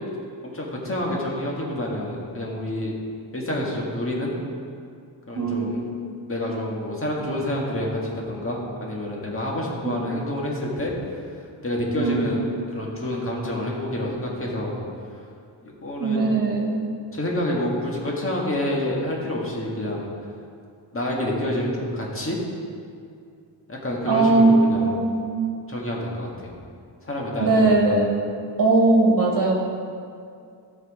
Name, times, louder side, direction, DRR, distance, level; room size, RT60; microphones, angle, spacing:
voice 1, 0.4-2.9 3.3-4.4 5.3-5.8 6.3-10.9 11.6-14.8 15.6-16.2 17.1-20.1 20.9-22.4 23.7-24.9 25.7-26.5 27.0-28.0, left 1 dB, 30° left, -3 dB, 1.7 m, -28 dB
voice 2, 5.3-6.0 9.8-10.0 12.0-12.3 16.0-16.8 24.1-25.3 27.4-28.2 28.6-29.5, right 3 dB, 50° right, 0 dB, 1.8 m, -20 dB
13.0 x 6.2 x 4.9 m, 2.4 s
wide cardioid pair, 170°, 44 cm